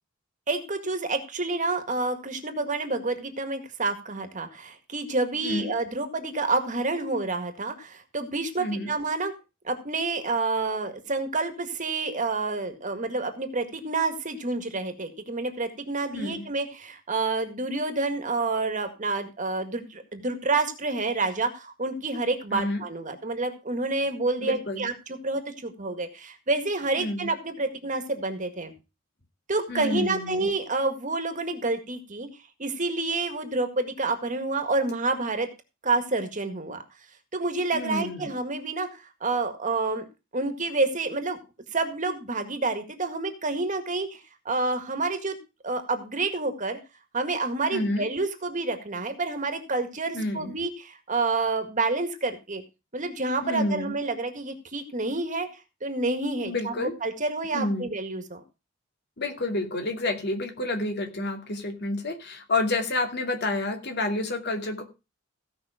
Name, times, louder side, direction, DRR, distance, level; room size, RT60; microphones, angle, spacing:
voice 1, 0.5-9.3 9.6-28.7 29.5-32.3 32.6-35.5 35.8-36.8 37.3-40.1 40.3-41.4 41.7-44.2 44.5-45.4 45.6-46.8 47.1-52.6 52.9-55.5 55.8-58.4, right 3 dB, 40° right, 7 dB, 1.9 m, -28 dB
voice 2, 5.4-5.7 8.6-8.9 16.0-16.4 22.5-22.8 24.4-24.8 27.0-27.3 29.7-30.5 37.7-38.3 47.7-48.1 50.1-50.5 53.4-53.9 56.4-56.9 57.5-57.9 59.2-64.9, left 2 dB, 55° left, 4 dB, 2.5 m, -29 dB
16.5 x 5.7 x 5.0 m, 0.29 s
head